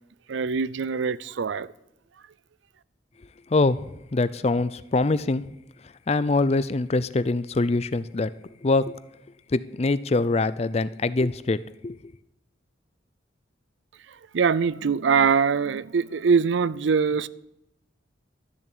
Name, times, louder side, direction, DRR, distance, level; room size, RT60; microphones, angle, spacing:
voice 1, 0.3-1.7 14.1-17.3, right 5 dB, 75° right, 0.5 m, -23 dB
voice 2, 4.1-5.4 6.1-8.3 8.6-8.8 9.5-11.6 11.8-12.0, left 3 dB, 35° left, 0.5 m, -23 dB
13.5 x 7.1 x 8.4 m
head